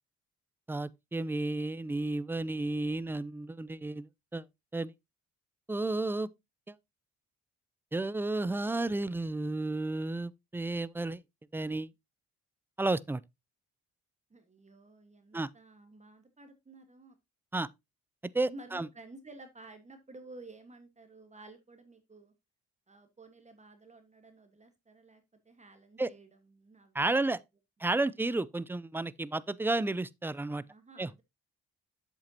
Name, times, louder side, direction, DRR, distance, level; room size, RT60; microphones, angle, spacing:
voice 1, 0.7-4.5 4.7-4.9 5.7-6.3 6.7-6.8 7.9-11.2 11.5-11.9 12.8-13.2 15.3-15.5 17.5-17.7 18.3-18.9 26.0-26.1 26.9-27.4 27.8-30.6 31.0-31.1, right 2 dB, 10° right, 0.3 m, -32 dB
voice 2, 14.3-17.2 18.5-22.3 22.9-27.4 30.7-31.2, right 2 dB, 25° right, 1.3 m, -53 dB
7.8 x 7.3 x 2.7 m
cardioid pair, 90°, 30 cm